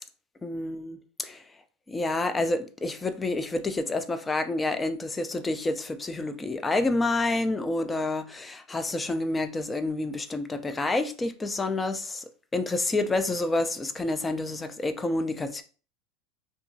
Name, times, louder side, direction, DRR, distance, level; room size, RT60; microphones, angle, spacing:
voice 1, 0.4-1.4 1.9-12.2 12.5-15.6, left 2 dB, 15° left, 0.3 m, -28 dB
2.8 x 2.3 x 2.6 m
supercardioid pair, 120°, 0 cm